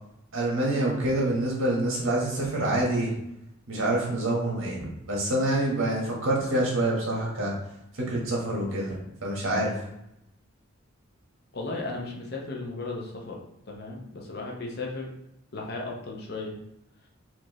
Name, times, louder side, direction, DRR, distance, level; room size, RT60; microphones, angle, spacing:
voice 1, 0.3-3.1 3.7-7.5 8.0-8.9 9.2-9.7, right 1 dB, 75° right, -3 dB, 1.4 m, -26 dB
voice 2, 11.5-13.4 13.7-15.1 15.5-16.6, left 3 dB, 50° left, -1 dB, 0.8 m, -35 dB
4.5 x 2.7 x 3.1 m, 0.82 s
head